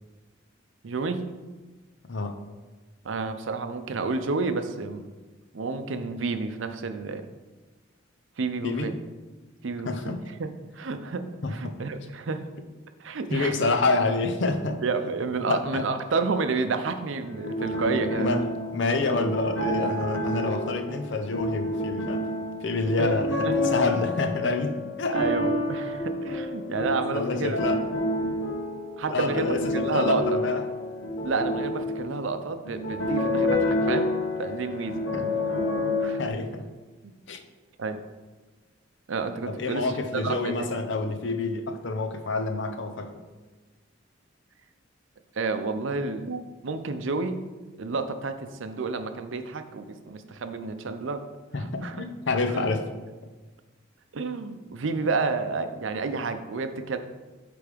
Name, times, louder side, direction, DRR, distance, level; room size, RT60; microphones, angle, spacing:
voice 1, 0.8-1.2 3.0-5.0 5.5-7.3 8.4-8.9 9.6-12.4 13.0-13.8 14.8-18.4 23.0-23.1 23.4-23.5 25.1-27.6 29.0-30.4 31.2-34.1 34.4-34.9 36.0-36.2 37.0-37.1 37.8-38.0 39.1-40.7 45.3-47.3 47.8-51.2 51.6-52.0 52.5-52.6 54.1-57.0, right 4 dB, 70° right, 8 dB, 0.6 m, -30 dB
voice 2, 9.9-10.2 11.4-11.7 13.3-14.8 15.5-15.8 17.7-18.4 18.7-22.3 22.6-25.2 27.1-27.8 29.1-30.6 35.1-35.3 36.2-36.6 37.3-37.4 39.5-43.2 51.5-52.9, left 3 dB, 60° left, 6 dB, 0.7 m, -28 dB
sound 1, 17.2-36.3, left 1 dB, 90° left, 1.5 m, -29 dB
8.3 x 3.4 x 5.0 m, 1.3 s
head